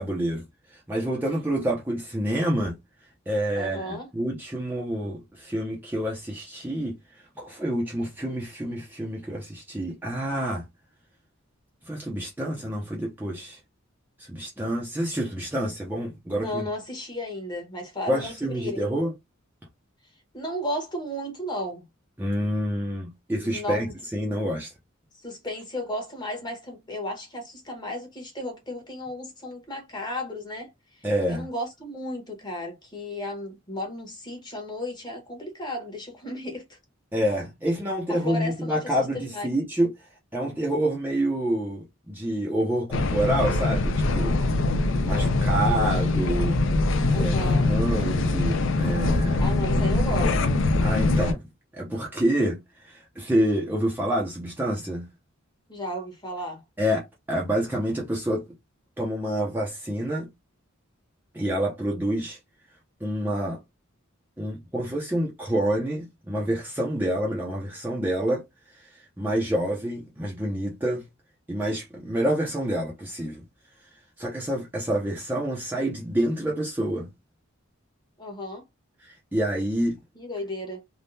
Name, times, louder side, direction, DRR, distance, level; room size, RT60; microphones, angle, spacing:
voice 1, 0.0-2.8 3.3-10.7 11.9-13.6 14.2-16.7 18.1-19.1 22.2-24.7 31.0-31.5 37.1-44.4 45.0-46.6 47.1-49.5 50.8-51.4 51.7-55.1 56.8-58.4 59.0-60.3 61.3-62.4 63.0-63.6 64.4-68.5 68.7-71.1 71.5-73.4 74.2-77.1 79.0-80.0, right 1 dB, 10° right, 0.6 m, -28 dB
voice 2, 3.5-4.1 16.3-19.0 20.3-21.8 23.5-23.9 25.1-36.8 38.1-38.9 39.3-39.5 47.1-47.7 49.4-50.3 55.7-56.6 78.2-78.6 80.1-80.8, left 1 dB, 20° left, 1.1 m, -34 dB
sound 1, 42.9-51.3, left 2 dB, 60° left, 0.5 m, -23 dB
3.5 x 2.2 x 2.6 m
head